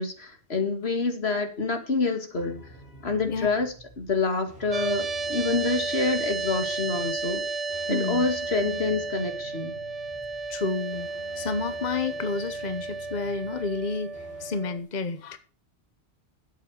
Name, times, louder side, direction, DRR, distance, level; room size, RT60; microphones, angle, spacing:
voice 1, 0.0-2.7 3.0-7.4 7.9-9.8, left 3 dB, 80° left, 2.3 m, -27 dB
sound 1, 2.3-14.5, right 2 dB, 5° right, 6.1 m, -49 dB
sound 2, 4.7-14.8, right 3 dB, 40° right, 0.7 m, -33 dB
voice 2, 7.9-8.3 10.5-15.4, left 4 dB, 45° left, 1.1 m, -30 dB
12.0 x 8.2 x 6.4 m
omnidirectional pair, 1.1 m